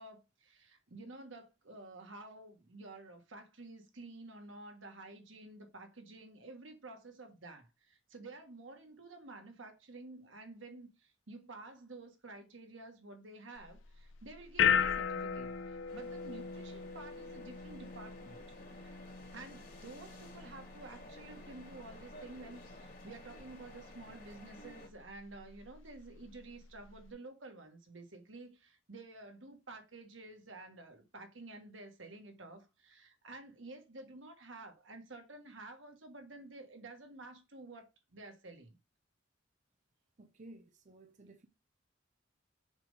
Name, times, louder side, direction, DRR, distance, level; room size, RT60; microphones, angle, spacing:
voice 1, 0.0-18.4 18.7-19.0 19.3-38.8, right 2 dB, 80° right, 1.6 m, -51 dB
sound 1, 13.6-27.1, left 7 dB, 90° left, 0.7 m, -38 dB
sound 2, 15.9-24.9, left 1 dB, 45° left, 2.7 m, -54 dB
voice 2, 40.2-41.5, right 2 dB, 40° right, 0.6 m, -55 dB
7.2 x 3.5 x 5.4 m
head